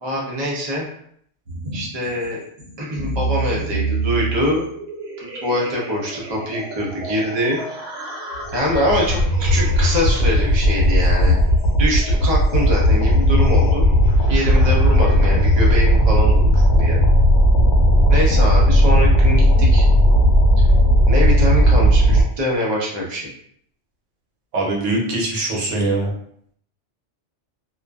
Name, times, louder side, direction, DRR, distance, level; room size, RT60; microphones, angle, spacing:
voice 1, 0.0-0.9 1.7-2.4 2.8-4.7 5.2-7.6 8.5-11.4 11.8-13.9 14.3-17.0 18.1-19.8 21.1-23.3, left 1 dB, 30° right, -3 dB, 0.5 m, -24 dB
sound 1, 1.5-16.1, right 3 dB, 55° right, 0.8 m, -32 dB
sound 2, 8.4-22.2, equal, 80° left, 0.9 m, -15 dB
voice 2, 24.5-26.1, right 2 dB, 90° right, -2 dB, 1.1 m, -22 dB
2.4 x 2.3 x 2.2 m, 0.65 s
omnidirectional pair, 1.2 m